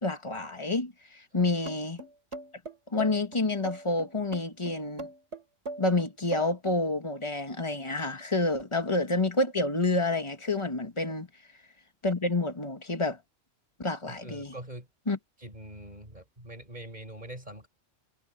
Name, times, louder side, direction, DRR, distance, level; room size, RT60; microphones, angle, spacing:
voice 1, 0.0-2.0 2.9-5.1 5.8-11.3 12.0-13.2 13.8-14.5 15.1-15.2, left 2 dB, 25° left, 1.9 m, -28 dB
sound 1, 1.7-6.8, right 2 dB, 60° right, 4.6 m, -39 dB
voice 2, 14.1-14.9 15.4-17.7, right 1 dB, 35° right, 5.7 m, -43 dB
omnidirectional pair, 1.3 m